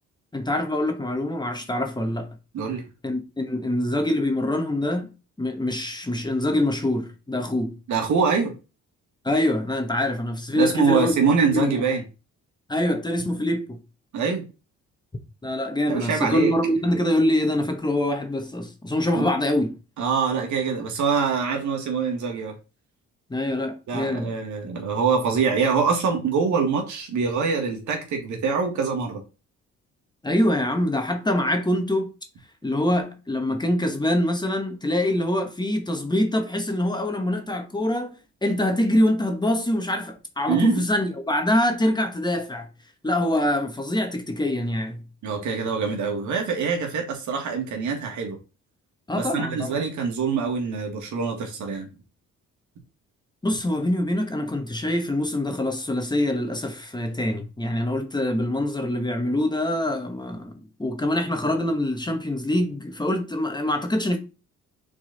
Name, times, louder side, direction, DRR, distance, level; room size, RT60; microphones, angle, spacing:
voice 1, 0.3-2.3 3.0-5.1 5.4-7.8 9.2-11.2 11.5-11.7 12.7-13.8 15.4-19.7 23.3-24.3 30.2-32.1 32.6-38.2 38.4-42.7 43.0-45.0 49.1-49.7 53.4-64.2, left 1 dB, 15° left, 1.2 m, -24 dB
voice 2, 7.9-8.5 10.5-12.0 14.1-14.4 15.9-16.5 19.2-19.3 20.0-22.5 23.9-29.2 40.5-40.8 45.2-48.4 49.1-51.9, right 5 dB, 75° right, 1.9 m, -24 dB
6.0 x 4.0 x 4.0 m
cardioid pair, 90°, 30 cm